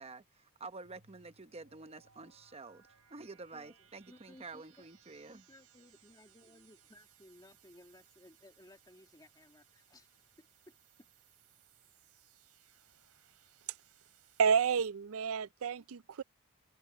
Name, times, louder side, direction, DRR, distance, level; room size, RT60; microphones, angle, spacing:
voice 1, 0.0-5.5, right 3 dB, 25° right, 0.9 m, -49 dB
sound 1, 0.8-14.9, right 9 dB, 85° right, 3.6 m, -66 dB
voice 2, 3.5-4.9 5.5-10.1 10.4-10.8, left 1 dB, 20° left, 2.3 m, -60 dB
voice 3, 14.4-16.2, right 6 dB, 65° right, 0.4 m, -30 dB
head